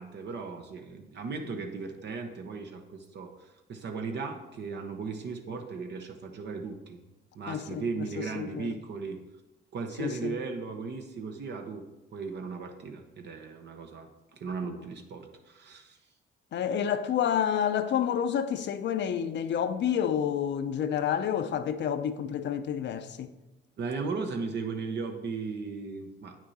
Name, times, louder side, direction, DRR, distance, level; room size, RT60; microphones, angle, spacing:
voice 1, 0.0-7.0 7.3-9.2 9.7-11.8 12.1-16.0 23.8-26.5, right 4 dB, 60° right, 0.9 m, -37 dB
voice 2, 7.5-8.7 10.0-10.3 14.6-14.8 16.5-23.3, left 9 dB, 65° left, 0.6 m, -29 dB
8.5 x 6.1 x 4.1 m
cardioid pair, 90°, 20 cm